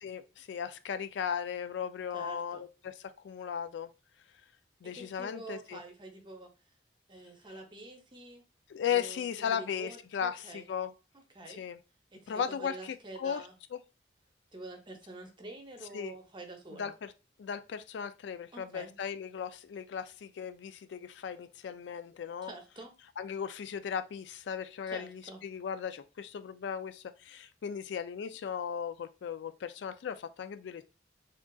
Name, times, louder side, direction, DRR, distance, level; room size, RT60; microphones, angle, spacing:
voice 1, 0.0-2.9 3.2-3.9 4.8-5.8 8.7-10.9 11.5-11.8 12.3-13.4 13.7-13.8 15.9-16.1 16.8-17.1 17.4-22.5 23.2-30.9, left 7 dB, 80° left, 0.3 m, -36 dB
voice 2, 2.1-2.7 4.8-6.5 7.1-8.4 8.9-10.7 11.1-11.6 12.1-13.5 14.5-16.9 18.5-18.9 22.4-22.9 24.9-25.4, right 2 dB, 30° right, 0.7 m, -47 dB
3.7 x 2.4 x 2.3 m
head